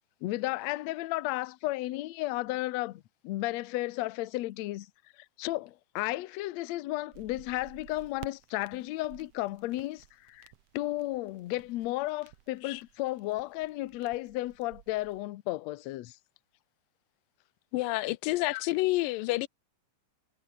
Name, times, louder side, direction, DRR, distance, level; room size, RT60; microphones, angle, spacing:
voice 1, 0.2-4.9 5.2-16.2 18.5-18.6, left 18 dB, 70° left, 1.7 m, -34 dB
sound 1, 7.1-15.2, right 13 dB, 65° right, 1.5 m, -54 dB
voice 2, 17.7-19.5, left 19 dB, 90° left, 2.4 m, -29 dB
omnidirectional pair, 3.9 m